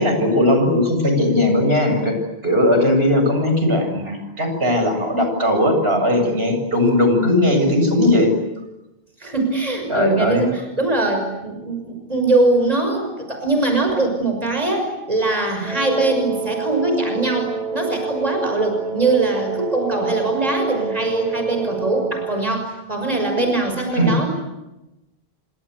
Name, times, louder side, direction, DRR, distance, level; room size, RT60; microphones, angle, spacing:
voice 1, 0.0-2.2 2.4-8.3 9.9-10.4 24.0-24.1, left 1 dB, 75° right, 5 dB, 7.8 m, -18 dB
voice 2, 9.2-24.3, right 2 dB, 35° right, 4 dB, 6.2 m, -22 dB
Wind instrument woodwind instrument, 15.6-22.4, right 4 dB, ahead, 6.2 m, -28 dB
28.0 x 26.0 x 8.2 m, 0.99 s
omnidirectional pair, 1.1 m